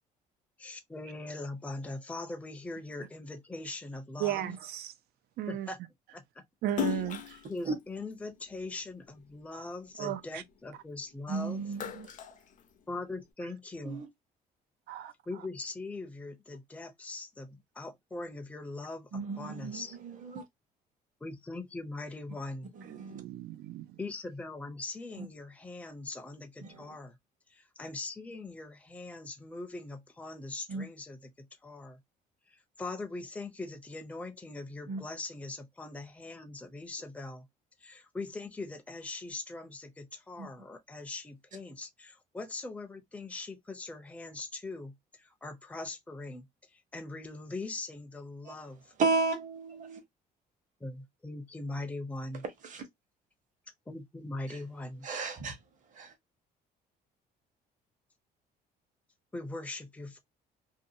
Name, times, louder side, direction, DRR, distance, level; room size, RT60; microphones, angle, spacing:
voice 1, 0.6-4.4 5.5-5.8 6.1-6.4 6.9-7.0 7.5-11.6 12.9-14.0 15.3-20.0 21.2-22.7 24.0-27.2 27.5-32.0 32.5-37.5 37.8-48.9 50.8-52.4 53.9-55.1 59.3-60.2, left 2 dB, 10° left, 0.5 m, -41 dB
voice 2, 4.2-4.9 5.4-5.7 6.6-7.4 10.0-10.4 14.9-15.1 22.9-24.0, right 13 dB, 70° right, 0.5 m, -35 dB
Splash splatter, 6.7-9.2 9.7-11.1 11.5-13.2, left 11 dB, 50° left, 0.6 m, -38 dB
voice 3, 11.3-12.1 13.8-14.1 19.1-20.4 22.7-23.2 25.2-25.3 26.6-26.9 30.7-30.8 34.9-35.0 40.4-40.5 48.4-48.6 49.0-50.0 52.6-52.8 54.5-54.6 55.0-55.6 55.9-56.1, right 4 dB, 50° right, 1.1 m, -34 dB
2.7 x 2.2 x 2.7 m
cardioid pair, 110°, 17 cm